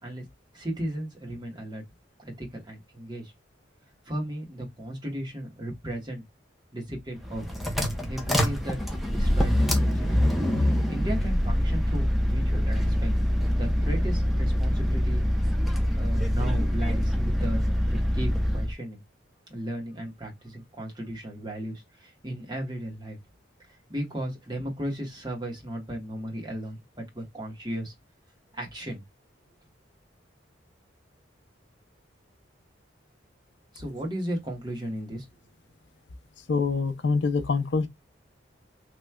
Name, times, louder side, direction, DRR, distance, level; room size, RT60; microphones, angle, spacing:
voice 1, 0.5-1.8 2.2-3.3 4.1-6.2 6.7-7.4 8.1-8.8 9.1-10.2 10.6-13.1 13.5-15.2 16.0-17.6 17.9-19.0 19.5-23.2 23.9-27.9 28.5-29.0 33.7-35.3, right 1 dB, 25° right, 1.4 m, -35 dB
sound 1, 7.2-18.7, equal, ahead, 0.7 m, -25 dB
voice 2, 36.5-37.9, left 4 dB, 65° left, 0.5 m, -25 dB
3.1 x 2.9 x 2.2 m
head